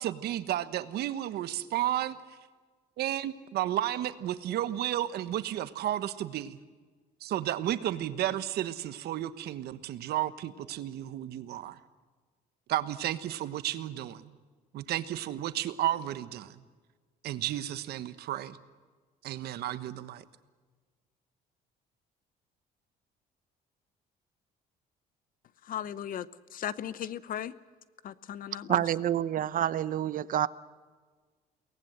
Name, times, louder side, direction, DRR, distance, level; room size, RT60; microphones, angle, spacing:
voice 1, 0.0-2.2 3.0-6.6 7.2-11.8 12.7-14.3 14.7-16.6 17.2-18.6 19.2-20.2, right 12 dB, 70° right, 1.2 m, -32 dB
voice 2, 25.7-26.2 26.5-27.5 28.0-28.8, left 10 dB, 55° left, 0.8 m, -36 dB
voice 3, 28.7-30.5, right 11 dB, 55° right, 0.8 m, -28 dB
23.0 x 18.5 x 8.0 m
cardioid pair, 110°, 17 cm